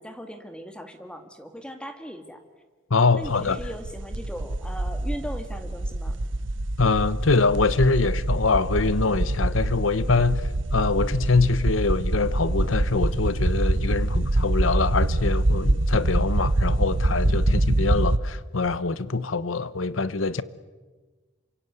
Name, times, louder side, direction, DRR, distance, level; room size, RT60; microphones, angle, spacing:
voice 1, 0.0-2.4 3.1-6.2, equal, 5° left, 1.9 m, -38 dB
voice 2, 2.9-3.6 6.8-20.4, left 4 dB, 90° left, 1.0 m, -24 dB
sound 1, 3.2-18.2, right 1 dB, 70° right, 1.0 m, -25 dB
27.5 x 24.5 x 8.1 m
head